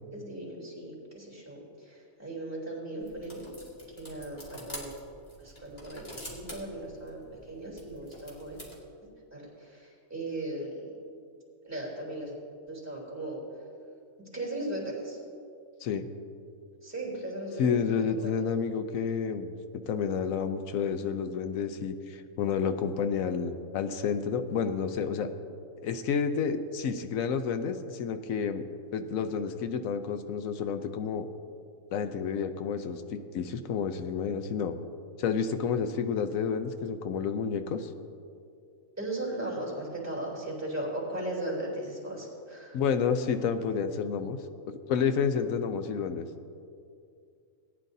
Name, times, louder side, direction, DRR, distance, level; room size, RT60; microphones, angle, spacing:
voice 1, 0.1-3.5 4.0-4.9 5.4-8.6 9.3-10.8 11.6-12.3 12.7-13.4 14.3-15.2 16.8-17.8 18.0-18.3 39.0-42.8, right 1 dB, 10° right, -5 dB, 3.3 m, -37 dB
sound 1, 3.0-8.8, equal, 30° left, 2.2 m, -47 dB
voice 2, 17.6-19.5 19.9-25.3 25.8-28.6 28.9-31.3 31.9-34.8 35.2-37.9 42.7-44.4 44.7-46.2, left 6 dB, 80° left, 8 dB, 1.1 m, -30 dB
18.5 x 9.9 x 2.7 m, 2.4 s
omnidirectional pair, 1.4 m